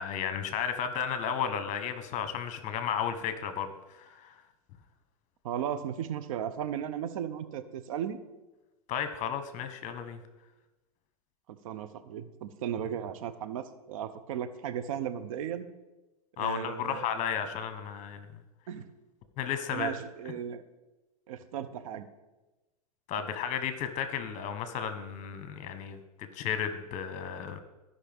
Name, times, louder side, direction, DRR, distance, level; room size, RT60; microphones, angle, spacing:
voice 1, 0.0-4.4 8.9-10.2 16.4-18.3 19.4-19.9 23.1-26.0 26.3-27.6, left 8 dB, 40° left, 9 dB, 1.1 m, -33 dB
voice 2, 5.4-8.2 11.5-15.7 16.4-17.1 18.7-18.9 19.7-20.6 21.3-22.1, right 9 dB, 65° right, 10 dB, 0.8 m, -36 dB
15.0 x 5.5 x 3.6 m, 1.1 s
hypercardioid pair, 100°, 19 cm